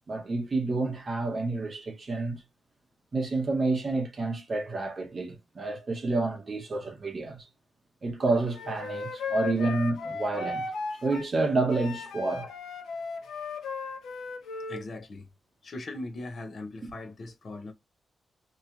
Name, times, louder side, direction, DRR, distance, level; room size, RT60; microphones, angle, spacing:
voice 1, 0.1-2.4 3.1-7.5 8.0-10.6 11.0-12.5, right 3 dB, 30° right, 0.9 m, -29 dB
Wind instrument woodwind instrument, 8.5-11.3 11.7-14.8, left 4 dB, 80° left, 0.9 m, -36 dB
voice 2, 14.7-15.3 15.6-17.7, left 2 dB, 40° left, 0.9 m, -39 dB
3.0 x 2.9 x 3.8 m
wide cardioid pair, 160°, 0 cm